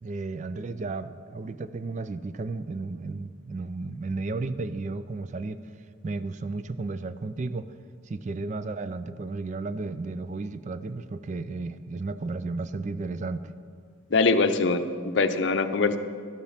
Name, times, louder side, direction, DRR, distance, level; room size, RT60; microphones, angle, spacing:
voice 1, 0.0-5.6 6.0-7.7 8.0-13.5, right 3 dB, 35° right, 13 dB, 0.3 m, -33 dB
voice 2, 14.1-16.0, left 3 dB, 60° left, 9 dB, 0.6 m, -23 dB
12.5 x 7.2 x 5.7 m, 2.2 s
head